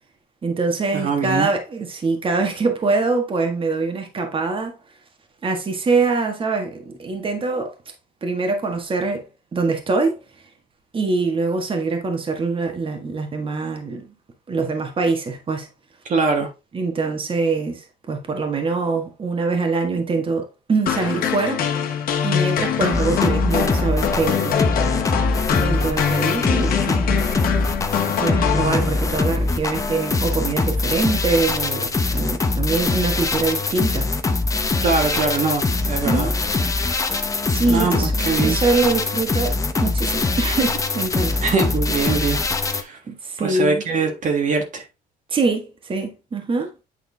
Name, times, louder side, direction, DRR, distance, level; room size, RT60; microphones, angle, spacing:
voice 1, 0.4-4.8 5.4-7.7 8.2-9.2 9.5-10.2 10.9-14.1 14.5-15.7 16.7-21.7 22.2-24.6 25.6-27.3 28.2-34.1 35.7-36.4 36.9-37.2 37.5-41.3 43.1-43.8 45.3-46.7, right 3 dB, 30° right, 1.6 m, -24 dB
voice 2, 0.9-1.5 16.0-16.5 34.8-36.3 37.7-38.6 41.4-43.0 43.4-44.8, right 4 dB, 50° right, 1.6 m, -22 dB
sound 1, 20.9-29.2, left 8 dB, 60° left, 1.3 m, -23 dB
sound 2, 22.9-42.8, left 3 dB, 20° left, 0.9 m, -23 dB
8.7 x 3.7 x 3.5 m
cardioid pair, 110°, 17 cm